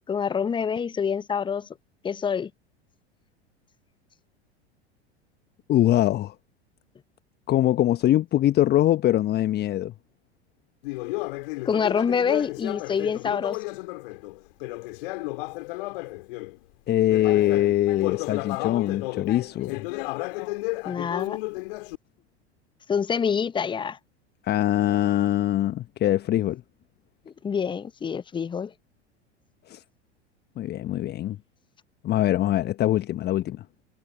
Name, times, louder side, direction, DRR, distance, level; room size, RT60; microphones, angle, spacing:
voice 1, 0.1-1.7 2.0-2.5 11.6-13.6 20.8-21.4 22.9-24.0 27.3-28.7, left 6 dB, 15° left, 0.9 m, -26 dB
voice 2, 5.7-6.3 7.5-9.9 16.9-19.9 24.4-26.6 29.7-29.8 30.6-31.4 32.0-33.6, left 13 dB, 30° left, 1.3 m, -23 dB
Conversation, 10.8-16.6 17.0-21.9, left 23 dB, 55° left, 2.5 m, -33 dB
figure-of-eight pair, 85°, 33 cm